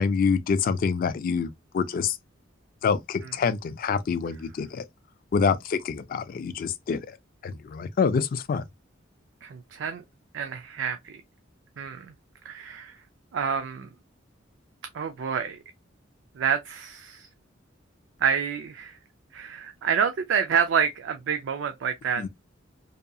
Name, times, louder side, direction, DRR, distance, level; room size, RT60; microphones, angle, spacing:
voice 1, 0.0-2.2 2.8-4.8 5.3-7.0 7.4-8.6 22.2-22.3, left 5 dB, 50° left, 0.3 m, -26 dB
voice 2, 9.4-10.0 10.3-11.2 11.8-12.1 12.4-13.0 13.3-13.9 14.9-15.6 16.4-17.3 18.2-19.0 19.3-22.3, right 7 dB, 70° right, 0.4 m, -28 dB
2.7 x 2.3 x 2.5 m
head